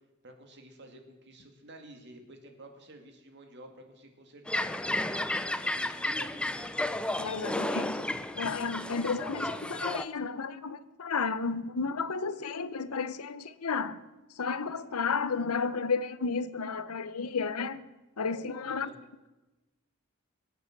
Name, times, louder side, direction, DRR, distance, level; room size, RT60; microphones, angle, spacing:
voice 1, 0.2-4.8 5.5-6.7 18.6-19.0, right 1 dB, 50° right, 2.2 m, -51 dB
sound 1, 4.5-10.0, left 1 dB, 5° left, 0.4 m, -33 dB
voice 2, 7.2-14.0 14.3-17.9 18.2-18.9, left 5 dB, 85° left, 0.8 m, -32 dB
23.0 x 8.6 x 6.0 m
head